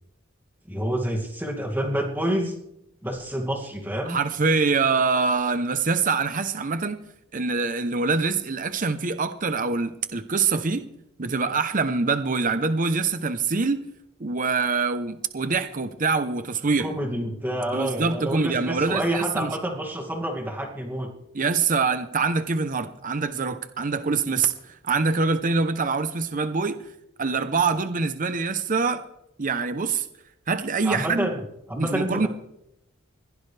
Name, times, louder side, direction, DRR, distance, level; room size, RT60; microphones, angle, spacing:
voice 1, 0.7-2.5 3.0-4.2 16.8-21.1 30.8-31.4 31.7-32.3, right 1 dB, 10° right, 1 dB, 2.3 m, -28 dB
voice 2, 4.1-7.0 7.3-10.8 11.2-13.8 14.2-16.9 17.7-19.6 21.3-26.8 27.2-29.0 29.4-30.1 30.5-31.3 31.8-32.3, right 4 dB, 40° right, 10 dB, 0.8 m, -24 dB
21.5 x 16.0 x 3.4 m, 0.82 s
head